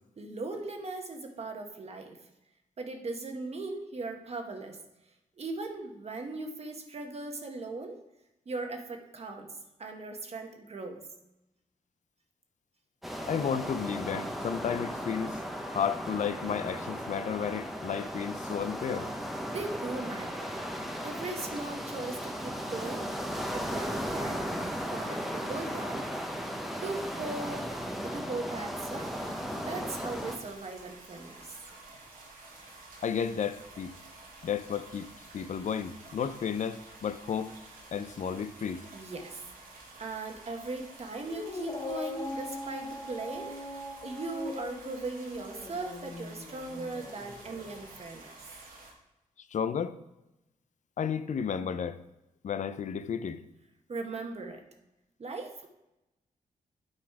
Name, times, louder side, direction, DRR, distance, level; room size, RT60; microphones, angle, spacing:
voice 1, 0.2-2.2 2.8-4.8 5.4-8.0 8.5-11.0 19.4-20.6 21.0-23.1 23.5-24.5 24.9-26.1 26.8-27.8 28.0-29.1 29.6-31.6 38.9-39.4 40.0-48.4 53.9-54.6 55.2-55.7, right 3 dB, 45° right, 1.2 m, -38 dB
sound 1, 13.0-30.4, equal, ahead, 0.9 m, -36 dB
voice 2, 13.3-19.1 33.0-33.9 34.4-37.5 37.9-38.8 49.5-50.0 51.0-52.0 52.4-53.4, left 7 dB, 60° left, 0.5 m, -32 dB
sound 2, 28.9-48.9, right 2 dB, 90° right, 1.6 m, -51 dB
Dog, 41.3-47.9, left 2 dB, 30° left, 1.0 m, -41 dB
8.8 x 4.0 x 4.7 m
cardioid pair, 90°, 14 cm